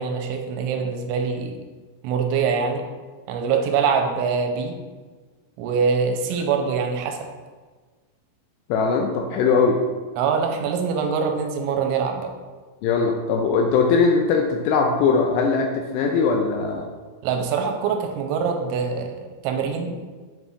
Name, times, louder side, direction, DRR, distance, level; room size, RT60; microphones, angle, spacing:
voice 1, 0.0-1.6 2.0-2.8 3.3-4.8 5.6-7.3 10.2-12.3 17.2-19.9, right 6 dB, 90° right, 3 dB, 3.0 m, -24 dB
voice 2, 8.7-9.8 12.8-16.9, left 5 dB, 85° left, 2 dB, 2.5 m, -20 dB
7.9 x 5.6 x 2.4 m, 1.4 s
omnidirectional pair, 5.3 m